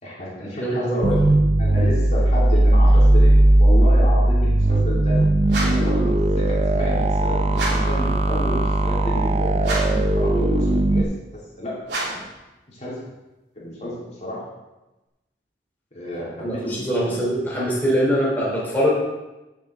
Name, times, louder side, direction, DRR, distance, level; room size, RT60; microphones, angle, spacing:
voice 1, 0.0-5.2 5.6-11.1 11.6-11.8 12.7-13.0 13.6-14.4 15.9-17.2, left 1 dB, 40° left, -6 dB, 3.6 m, -30 dB
voice 2, 0.6-1.1 16.4-18.9, equal, 10° left, -6 dB, 3.1 m, -23 dB
sound 1, 1.0-11.0, right 1 dB, 35° right, 0.6 m, -18 dB
sound 2, 5.5-6.0 7.5-8.0 9.6-10.1 11.8-12.3, right 2 dB, 75° right, 3.1 m, -28 dB
16.0 x 7.4 x 3.7 m, 1.0 s
head